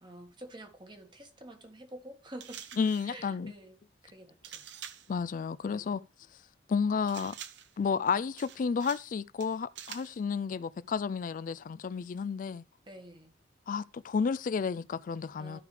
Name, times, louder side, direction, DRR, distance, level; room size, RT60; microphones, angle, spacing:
voice 1, 0.0-2.6 3.0-3.8 4.0-4.7 5.7-5.9 12.9-13.3 15.4-15.6, right 1 dB, 25° right, 1.3 m, -48 dB
sound 1, 2.4-3.2 4.4-5.1 7.1-7.8 8.4-9.1 9.4-10.2, right 9 dB, 70° right, 0.6 m, -46 dB
voice 2, 2.8-3.5 5.1-6.0 6.7-7.4 7.8-12.6 13.7-15.6, left 5 dB, 45° left, 0.3 m, -31 dB
12.5 x 4.9 x 3.3 m
head